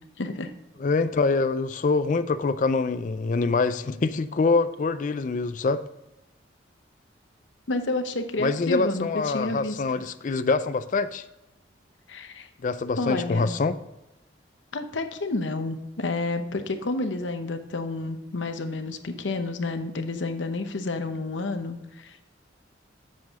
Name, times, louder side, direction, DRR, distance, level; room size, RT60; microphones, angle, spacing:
voice 1, 0.2-0.5 7.7-10.0 12.1-12.5 13.0-13.5 14.7-22.2, left 2 dB, 75° left, 0.8 m, -30 dB
voice 2, 0.8-5.8 8.4-11.2 12.6-13.8, left 4 dB, 40° left, 0.4 m, -25 dB
7.6 x 7.4 x 3.6 m
head